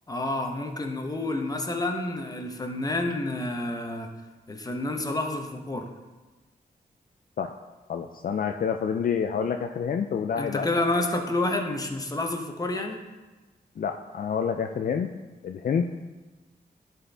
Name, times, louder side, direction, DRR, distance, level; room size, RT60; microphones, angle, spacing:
voice 1, 0.1-4.1 4.5-5.9 10.4-13.0, left 2 dB, 20° left, 3 dB, 0.9 m, -29 dB
voice 2, 7.9-10.7 13.8-15.1 15.4-16.0, left 7 dB, 55° left, 5 dB, 0.4 m, -28 dB
11.0 x 4.2 x 3.4 m, 1.2 s
wide cardioid pair, 105°, 17 cm